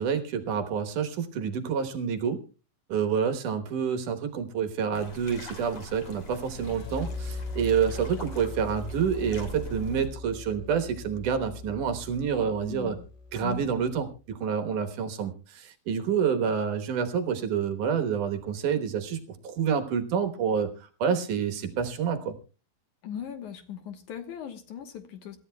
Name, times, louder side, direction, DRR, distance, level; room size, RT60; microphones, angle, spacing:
voice 1, 0.0-2.4 2.9-13.0 13.3-20.7 21.0-22.4, right 7 dB, 65° right, 6 dB, 2.5 m, -28 dB
sound 1, 4.9-10.1, equal, 40° left, 3.4 m, -43 dB
sound 2, 6.5-14.1, left 3 dB, 90° left, 5.0 m, -40 dB
voice 2, 12.6-13.0 13.4-13.7 23.0-25.4, left 9 dB, 65° left, 7 dB, 2.3 m, -39 dB
26.5 x 13.5 x 2.3 m, 0.33 s
omnidirectional pair, 4.2 m